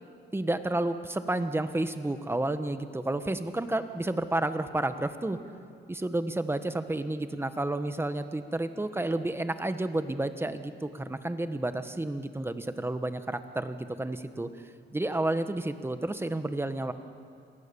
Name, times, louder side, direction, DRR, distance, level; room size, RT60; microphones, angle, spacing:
voice 1, 0.3-5.4 5.9-14.5 14.9-16.9, right 2 dB, 10° right, 9 dB, 1.4 m, -31 dB
27.0 x 19.0 x 7.1 m, 2.3 s
cardioid pair, 90°, 20 cm